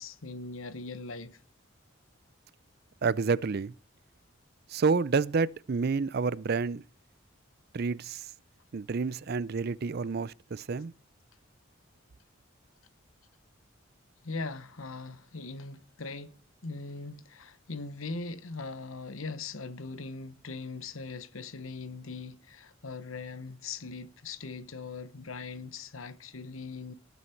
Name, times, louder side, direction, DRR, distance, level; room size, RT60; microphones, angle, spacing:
voice 1, 0.0-1.4 14.2-16.3 16.6-26.9, left 3 dB, 90° left, 1.1 m, -40 dB
voice 2, 3.0-3.7 4.7-6.8 7.7-8.3 8.7-10.9, right 4 dB, 50° right, 0.5 m, -29 dB
18.5 x 7.0 x 4.5 m
head